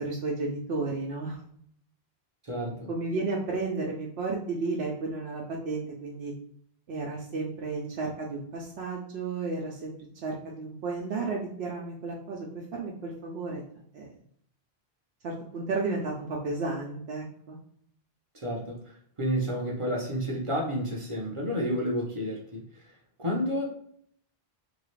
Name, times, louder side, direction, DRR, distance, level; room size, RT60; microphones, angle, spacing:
voice 1, 0.0-1.4 2.9-6.3 6.9-9.9 10.2-13.6 13.9-14.1 15.2-17.6, right 3 dB, 85° right, -2 dB, 0.8 m, -33 dB
voice 2, 2.4-2.9 18.3-22.9 23.2-23.7, equal, 35° right, -2 dB, 0.6 m, -31 dB
2.7 x 2.4 x 3.1 m, 0.65 s
omnidirectional pair, 1.0 m